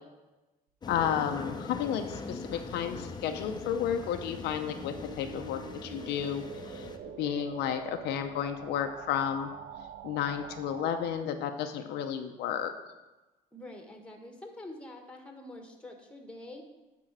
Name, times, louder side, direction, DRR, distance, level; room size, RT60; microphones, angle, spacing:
sound 1, 0.8-7.0, left 4 dB, 25° left, 0.7 m, -42 dB
voice 1, 0.9-6.9 7.2-9.5 10.0-12.7, left 9 dB, 80° left, 6 dB, 0.7 m, -32 dB
sound 2, 3.2-11.2, right 6 dB, 55° right, 0.5 m, -46 dB
voice 2, 13.5-16.7, left 1 dB, 5° left, 3 dB, 1.4 m, -46 dB
10.5 x 3.8 x 6.1 m, 1.1 s
cardioid pair, 110°, 17 cm